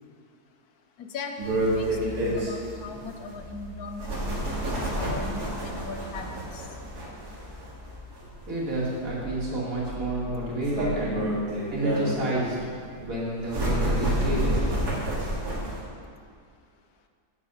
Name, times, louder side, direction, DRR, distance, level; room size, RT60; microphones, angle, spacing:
voice 1, 1.0-6.3 6.5-6.6, left 4 dB, 80° left, 5 dB, 1.3 m, -39 dB
sound 1, 1.4-15.8, right 1 dB, 85° right, 2.6 m, -30 dB
voice 2, 8.5-11.2 11.7-12.7 13.0-14.6, right 1 dB, 60° right, -6 dB, 2.7 m, -29 dB
8.4 x 7.8 x 5.5 m, 2.2 s
omnidirectional pair, 1.6 m